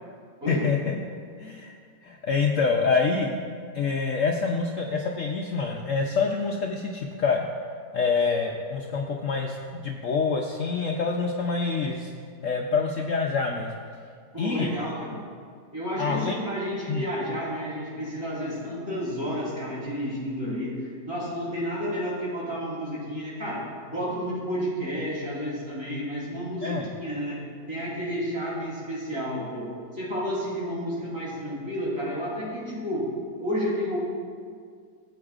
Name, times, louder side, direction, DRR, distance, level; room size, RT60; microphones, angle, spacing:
voice 1, 0.5-1.0 1.4-1.7 2.0-3.4 3.7-7.5 7.9-12.1 12.4-13.7 14.4-14.8 16.0-16.4 16.9-17.0 26.6-26.9, left 4 dB, 65° left, 0 dB, 0.8 m, -26 dB
voice 2, 14.3-15.2 15.7-27.4 27.7-33.1 33.4-34.0, equal, 55° right, -6 dB, 3.6 m, -31 dB
17.5 x 8.0 x 2.4 m, 2.1 s
omnidirectional pair, 1.9 m